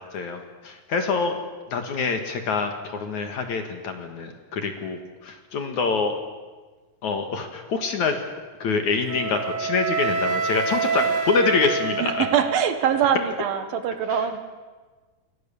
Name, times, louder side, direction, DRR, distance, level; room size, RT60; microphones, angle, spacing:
voice 1, 0.1-1.4 1.7-6.1 7.0-8.2 8.6-12.3, left 4 dB, 55° left, 6 dB, 2.8 m, -25 dB
Wind instrument woodwind instrument, 9.1-13.1, right 5 dB, 45° right, 1.5 m, -27 dB
voice 2, 12.0-14.4, right 8 dB, 70° right, 9 dB, 3.1 m, -23 dB
28.5 x 24.5 x 7.1 m, 1.4 s
omnidirectional pair, 4.7 m